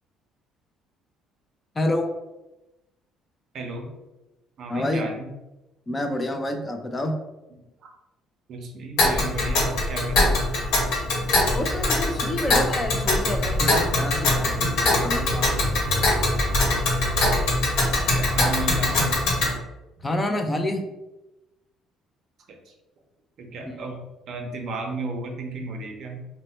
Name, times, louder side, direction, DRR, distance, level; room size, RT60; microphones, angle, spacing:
voice 1, 1.8-2.1 4.7-5.1 5.9-7.2 11.5-16.1 20.0-20.9 23.6-23.9, left 1 dB, 15° left, 5 dB, 0.4 m, -28 dB
voice 2, 3.5-3.9 4.6-5.3 7.5-7.9 8.5-10.5 18.1-19.2 22.5-22.7 23.4-26.2, right 2 dB, 45° right, 2 dB, 0.6 m, -34 dB
Tick, 9.0-19.5, left 2 dB, 90° left, 1.1 m, -22 dB
3.0 x 2.1 x 4.1 m, 1.0 s
cardioid pair, 160°, 0 cm